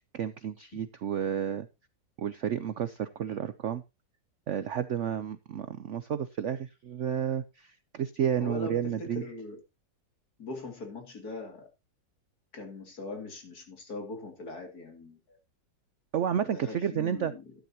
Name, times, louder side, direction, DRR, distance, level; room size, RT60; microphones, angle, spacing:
voice 1, 0.1-1.7 2.2-3.8 4.5-9.2 16.1-17.3, right 9 dB, 65° right, 0.7 m, -31 dB
voice 2, 8.4-9.6 10.4-11.7 12.5-15.4 16.5-17.4, left 3 dB, 55° left, 3.1 m, -41 dB
12.5 x 11.0 x 2.8 m
omnidirectional pair, 2.0 m